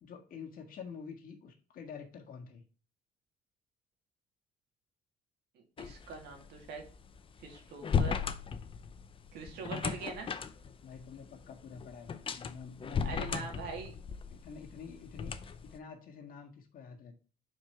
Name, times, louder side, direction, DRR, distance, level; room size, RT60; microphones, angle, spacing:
voice 1, 0.0-2.6 9.5-9.9 10.8-13.6 14.3-17.1, left 6 dB, 55° left, 2 dB, 1.7 m, -48 dB
voice 2, 5.5-6.8 7.4-8.2 9.3-10.3 13.0-13.9, right 5 dB, 75° right, 2 dB, 2.3 m, -43 dB
sound 1, 5.8-15.8, left 6 dB, 30° left, 0.6 m, -37 dB
5.1 x 4.5 x 5.5 m, 0.37 s
cardioid pair, 110°, 17 cm